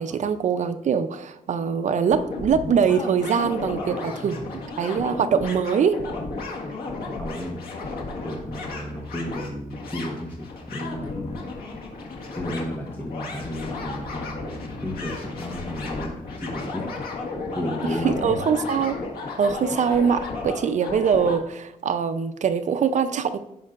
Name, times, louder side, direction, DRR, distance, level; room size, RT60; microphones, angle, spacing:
voice 1, 0.0-4.4 4.8-6.0 18.0-19.0 19.4-23.4, right 6 dB, 55° right, 0.6 m, -23 dB
sound 1, 2.1-21.4, left 3 dB, 85° left, 1.7 m, -34 dB
voice 2, 3.8-4.4 7.2-7.7 8.2-11.4 12.3-16.9 17.5-18.4, left 1 dB, 15° left, 1.1 m, -33 dB
15.5 x 5.4 x 2.5 m
wide cardioid pair, 130°, 15 cm